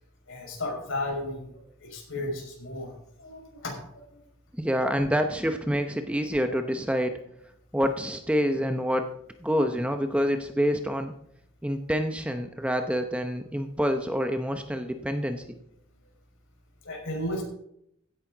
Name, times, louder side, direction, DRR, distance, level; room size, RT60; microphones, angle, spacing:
voice 1, 0.3-1.5 1.8-2.9 3.2-3.7 4.9-5.0 16.8-17.4, left 1 dB, 65° left, 0 dB, 5.8 m, -33 dB
voice 2, 4.6-7.2 7.7-9.1 9.4-11.1 11.6-15.4, equal, 5° right, 6 dB, 0.8 m, -27 dB
16.0 x 10.5 x 3.9 m, 0.73 s
head